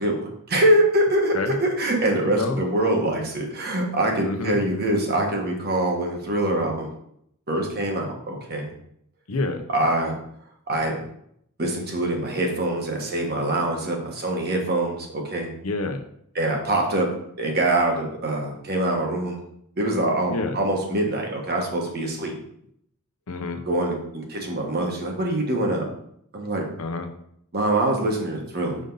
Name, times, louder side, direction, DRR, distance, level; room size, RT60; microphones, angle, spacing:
voice 1, 0.0-6.9 7.5-8.7 9.7-10.2 10.7-11.0 11.6-15.5 16.3-17.1 17.4-19.4 19.8-22.3 23.7-25.8 26.3-26.6 27.5-28.8, right 1 dB, 45° right, 1 dB, 1.3 m, -24 dB
voice 2, 2.2-2.6 4.2-4.6 9.3-9.6 15.6-16.0 20.3-20.6 23.3-23.6 26.8-27.1, left 3 dB, 70° left, 7 dB, 0.7 m, -28 dB
5.2 x 5.2 x 3.9 m, 0.71 s
head